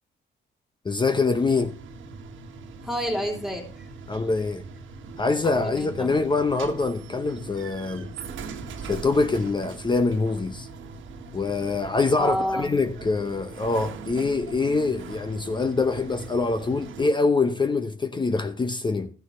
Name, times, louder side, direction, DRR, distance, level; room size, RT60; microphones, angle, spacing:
voice 1, 0.8-1.7 4.1-4.6 5.2-8.1 8.8-10.7 11.3-19.1, left 3 dB, 25° left, 0.7 m, -24 dB
sound 1, 1.3-17.1, right 4 dB, 75° right, 1.4 m, -41 dB
voice 2, 2.8-3.9 5.4-6.3 12.2-12.7, equal, ahead, 3.0 m, -29 dB
14.0 x 6.3 x 4.2 m
cardioid pair, 90°, 20 cm